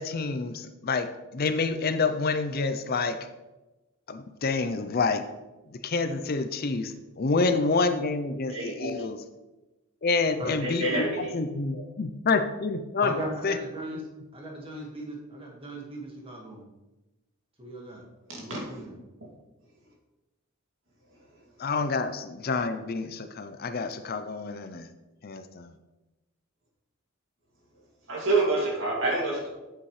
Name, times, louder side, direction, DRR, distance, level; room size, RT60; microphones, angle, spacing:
voice 1, 0.0-3.2 4.1-5.2 5.7-9.2 10.0-13.1 13.4-13.6 21.6-24.9 25.2-25.8, left 4 dB, 45° left, 9 dB, 0.5 m, -28 dB
voice 2, 8.5-9.0 10.6-11.3 11.7-11.8 18.3-18.6 19.2-19.3 28.1-29.5, right 2 dB, 60° right, -2 dB, 2.4 m, -27 dB
voice 3, 13.0-14.0 14.3-16.6 17.6-18.0 18.4-18.9, right 1 dB, 25° right, -1 dB, 1.8 m, -37 dB
8.6 x 8.0 x 3.2 m, 1.1 s
head